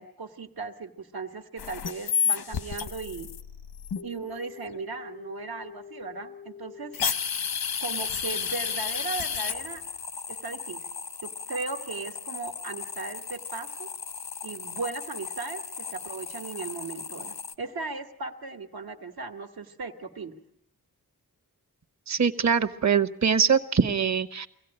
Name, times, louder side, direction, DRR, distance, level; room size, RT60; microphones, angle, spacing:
voice 1, 0.0-3.3 4.0-7.0 7.8-9.8 10.3-10.9 11.2-13.9 14.4-20.3, right 4 dB, 80° right, 6 dB, 1.6 m, -37 dB
sound 1, 1.6-17.5, left 7 dB, 90° left, 1.1 m, -34 dB
voice 2, 22.1-24.5, right 6 dB, 50° right, 10 dB, 1.1 m, -23 dB
24.0 x 16.5 x 10.0 m, 0.72 s
wide cardioid pair, 90°, 36 cm